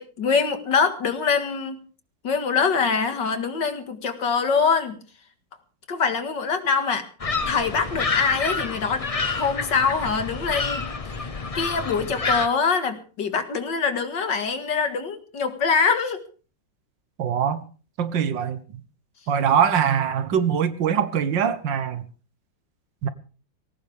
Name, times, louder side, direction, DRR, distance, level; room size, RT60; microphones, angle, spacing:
voice 1, 0.0-1.8 2.2-5.0 5.9-7.1 7.5-9.1 9.3-10.8 11.1-11.3 11.6-16.2, left 5 dB, 75° left, 2.5 m, -24 dB
sound 1, 7.2-12.5, left 4 dB, 35° left, 0.6 m, -28 dB
voice 2, 17.2-17.6 18.0-18.8 19.3-22.0 23.0-23.1, right 8 dB, 80° right, 1.8 m, -23 dB
20.0 x 17.5 x 3.5 m
omnidirectional pair, 2.0 m